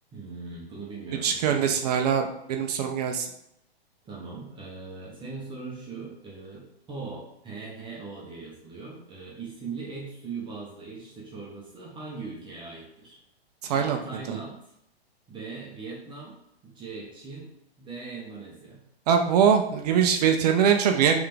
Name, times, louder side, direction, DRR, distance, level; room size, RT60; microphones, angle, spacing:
voice 1, 0.1-1.7 4.0-13.2 13.7-14.6 15.3-17.5 17.8-18.8, right 4 dB, 15° right, -4 dB, 1.0 m, -40 dB
voice 2, 1.2-3.3 13.6-14.0 14.3-14.4 19.1-21.2, right 7 dB, 40° right, 4 dB, 0.5 m, -22 dB
3.7 x 3.5 x 3.3 m, 0.78 s
hypercardioid pair, 135°, 32 cm